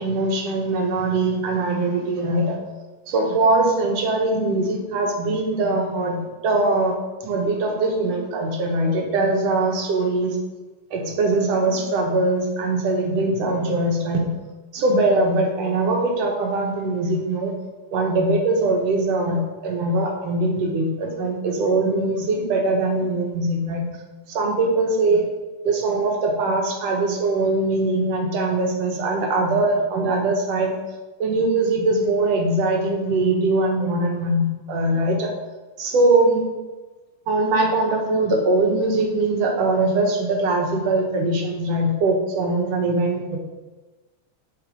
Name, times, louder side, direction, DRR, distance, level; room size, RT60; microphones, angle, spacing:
voice 1, 0.0-2.6 3.1-6.9 7.2-10.4 10.9-14.4 14.7-17.5 17.9-23.9 24.3-25.3 25.6-30.8 31.2-35.3 35.8-36.5 37.3-43.4, right 2 dB, 60° right, 1 dB, 2.2 m, -21 dB
11.5 x 4.3 x 5.2 m, 1.2 s
omnidirectional pair, 3.5 m